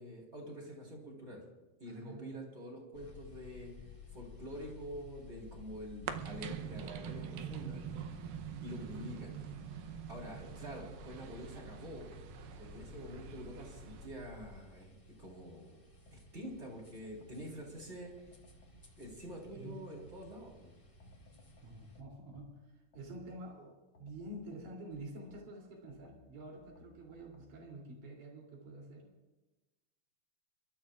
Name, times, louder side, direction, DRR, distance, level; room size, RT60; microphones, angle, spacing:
voice 1, 0.0-1.4 1.8-3.7 4.1-7.8 8.6-9.3 10.1-12.1 12.6-14.9 15.2-15.8 16.1-18.3 19.0-20.7, equal, 15° right, -2 dB, 3.8 m, -47 dB
voice 2, 1.9-2.4 19.5-19.8 21.6-29.1, right 1 dB, 55° right, -1 dB, 4.5 m, -48 dB
sound 1, 2.9-22.0, left 3 dB, 35° left, 0.5 m, -54 dB
sound 2, 6.1-14.1, right 9 dB, 85° right, 2.6 m, -45 dB
sound 3, 16.1-17.6 18.1-20.5 21.0-23.5 23.9-27.7, left 1 dB, 75° left, 1.1 m, -63 dB
29.5 x 13.5 x 2.5 m, 1.1 s
omnidirectional pair, 4.5 m